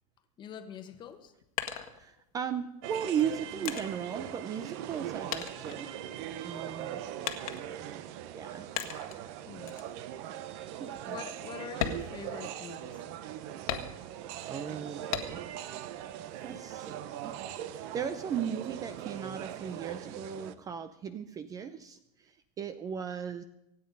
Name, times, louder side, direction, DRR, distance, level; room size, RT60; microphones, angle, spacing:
voice 1, 0.4-1.3 9.5-9.8 11.1-13.0, left 8 dB, 25° left, 9 dB, 1.3 m, -45 dB
sound 1, 1.0-2.5 3.2-5.0 5.3-6.5 7.2-7.9 8.8-9.2 9.7-9.9 10.4-10.5 10.9-11.1 11.7-12.9 13.7-14.3 15.1-15.7 16.1-16.9, left 10 dB, 75° left, 1.7 m, -38 dB
voice 2, 1.9-5.9 6.4-7.0 8.3-8.7 10.8-11.2 14.5-15.7 16.4-17.4 17.7-23.4, right 8 dB, 20° right, 12 dB, 0.5 m, -37 dB
sound 2, 2.8-20.5, right 11 dB, 50° right, 1.0 m, -41 dB
25.5 x 9.2 x 5.3 m, 0.84 s
supercardioid pair, 155°, 19 cm